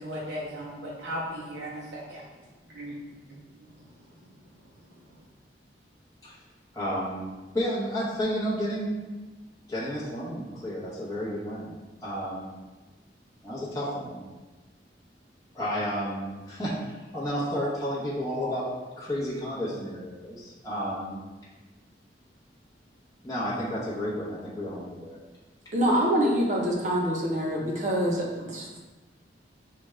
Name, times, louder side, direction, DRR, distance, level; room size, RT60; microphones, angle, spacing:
voice 1, 0.0-2.2 2.7-3.0 3.3-3.7, equal, 85° right, -5 dB, 0.6 m, -37 dB
voice 2, 6.7-7.2 7.5-9.1 9.7-11.8 12.0-12.5 13.4-14.2 15.5-16.8 17.1-18.7 19.0-21.2 23.2-25.2, equal, 20° left, -9 dB, 0.9 m, -31 dB
voice 3, 25.7-28.8, equal, 40° right, -2 dB, 0.8 m, -25 dB
6.0 x 2.4 x 3.1 m, 1.2 s
head